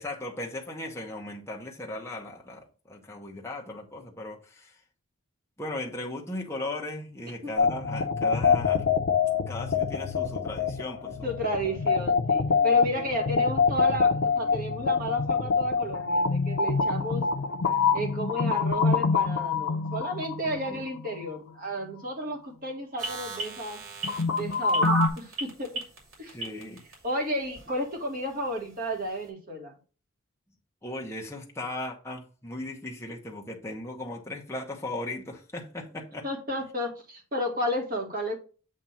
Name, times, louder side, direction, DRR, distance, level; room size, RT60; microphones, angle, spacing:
voice 1, 0.0-4.8 5.6-9.0 9.5-11.3 13.0-13.1 20.7-20.8 26.3-26.8 30.8-36.2, left 2 dB, 15° left, 0.9 m, -37 dB
sound 1, 7.6-21.3 24.0-25.1, left 5 dB, 75° left, 0.6 m, -26 dB
voice 2, 11.2-17.2 17.9-23.8 24.3-25.8 26.2-26.4 27.0-29.7 36.2-38.3, equal, 40° right, 1.5 m, -32 dB
sound 2, 23.0-26.9 27.6-27.7, right 2 dB, 75° right, 2.7 m, -30 dB
7.5 x 2.7 x 5.5 m
head